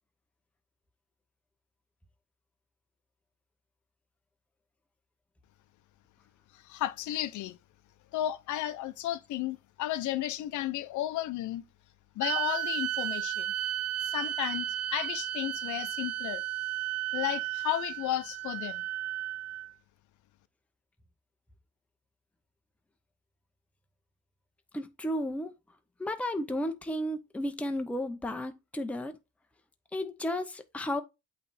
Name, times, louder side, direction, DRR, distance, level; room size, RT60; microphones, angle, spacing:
voice 1, 6.5-7.6 8.1-11.6 12.2-13.5 14.0-16.4 17.1-18.8, left 13 dB, 70° left, 0.6 m, -33 dB
sound 1, 12.2-19.7, right 13 dB, 55° right, 0.5 m, -34 dB
voice 2, 24.7-25.5 26.0-29.1 29.9-31.0, left 1 dB, 5° left, 0.6 m, -33 dB
8.4 x 3.3 x 4.1 m
cardioid pair, 170°, 31 cm